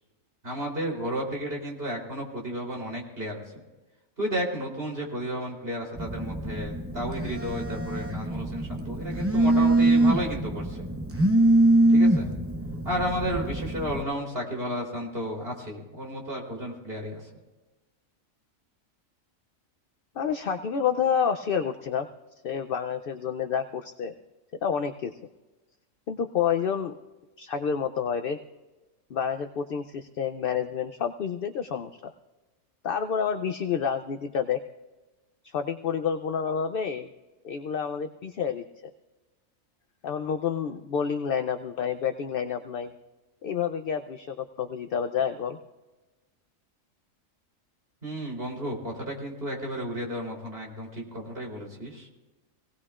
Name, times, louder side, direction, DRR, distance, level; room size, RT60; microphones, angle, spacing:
voice 1, 0.4-3.4 4.2-10.9 11.9-12.3 12.8-17.2 48.0-52.1, equal, 45° right, -1 dB, 3.7 m, -33 dB
Telephone, 6.0-14.0, right 1 dB, 15° right, 0.7 m, -24 dB
voice 2, 20.2-22.1 22.4-24.1 24.6-25.1 26.1-26.9 27.4-28.4 29.1-32.1 32.8-34.6 35.4-37.1 37.4-38.6 40.0-42.9 43.4-45.6, left 7 dB, 55° left, 7 dB, 0.6 m, -29 dB
24.5 x 18.0 x 2.4 m, 1.1 s
omnidirectional pair, 1.4 m